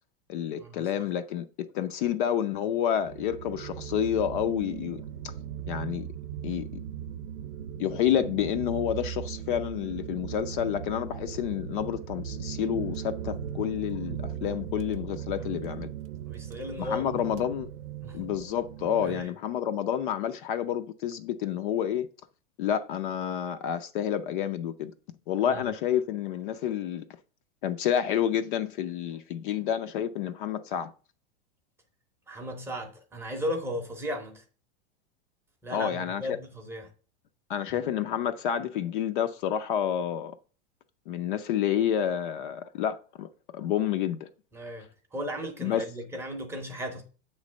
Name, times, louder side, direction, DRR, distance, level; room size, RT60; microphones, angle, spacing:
voice 1, 0.3-1.5 1.7-5.3 5.7-6.1 6.4-6.7 7.8-15.9 16.8-17.7 18.1-22.1 22.6-24.9 25.3-27.0 27.6-30.9 35.7-36.4 37.5-40.3 41.1-44.3 45.6-45.8, left 9 dB, 50° left, 0.5 m, -29 dB
sound 1, 3.0-19.2, right 9 dB, 80° right, 0.6 m, -38 dB
voice 2, 16.3-17.2 18.0-18.2 19.1-19.3 25.5-25.6 32.3-34.4 35.6-36.9 44.5-47.0, equal, 5° right, 0.7 m, -36 dB
7.4 x 3.2 x 6.1 m
supercardioid pair, 165°, 34 cm